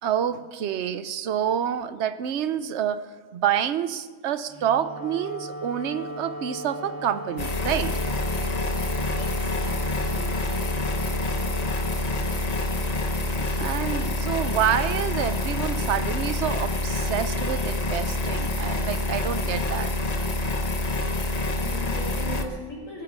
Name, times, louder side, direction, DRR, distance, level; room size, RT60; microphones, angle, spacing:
voice 1, 0.0-8.0 13.4-19.9, right 9 dB, 60° right, 13 dB, 1.0 m, -28 dB
Wind instrument woodwind instrument, 4.5-13.8, equal, 20° right, 0.6 m, -38 dB
sound 1, 7.4-22.5, left 2 dB, 30° left, 1.1 m, -27 dB
voice 2, 8.8-10.5 21.6-23.0, equal, 75° left, -3 dB, 4.5 m, -39 dB
19.0 x 10.5 x 6.2 m, 1.4 s
omnidirectional pair, 1.4 m